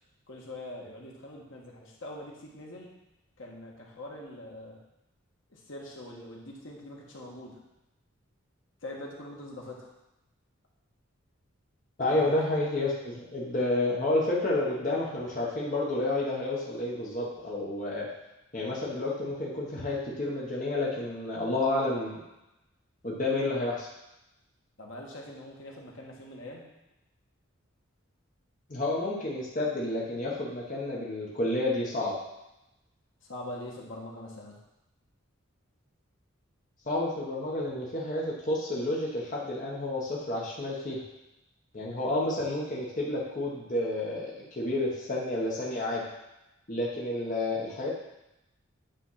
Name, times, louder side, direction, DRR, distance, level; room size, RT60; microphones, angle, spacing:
voice 1, 0.3-2.9 3.4-4.8 5.5-7.6 8.8-9.9 12.1-12.4 24.8-26.6 33.2-34.6, left 1 dB, 65° left, -2 dB, 1.4 m, -43 dB
voice 2, 12.0-18.1 18.5-22.2 23.0-23.9 28.7-32.1 36.9-41.0 41.7-46.1 46.7-47.9, left 2 dB, 40° left, -5 dB, 1.2 m, -30 dB
9.0 x 3.4 x 5.7 m, 0.91 s
head